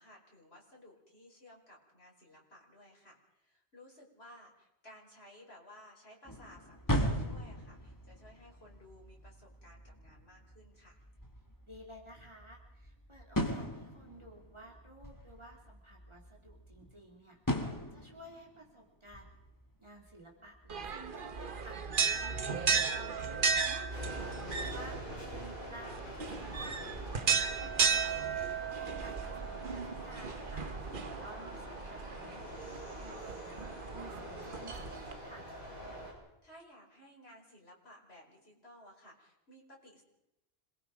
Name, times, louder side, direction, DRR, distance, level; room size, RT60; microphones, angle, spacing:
voice 1, 0.0-11.0 36.4-40.0, left 1 dB, 75° left, -2 dB, 5.4 m, -57 dB
sound 1, 6.2-17.0 17.5-18.6 19.1-19.7 20.0-20.1 20.5-20.9, equal, 20° left, 2.0 m, -39 dB
voice 2, 11.6-19.3 19.8-35.6, right 1 dB, 25° right, 0 dB, 3.6 m, -54 dB
sound 2, 20.7-35.1, right 5 dB, 55° right, 1.2 m, -35 dB
sound 3, 23.9-36.1, equal, 60° left, 8.0 m, -46 dB
26.5 x 20.5 x 5.2 m, 0.89 s
omnidirectional pair, 1.1 m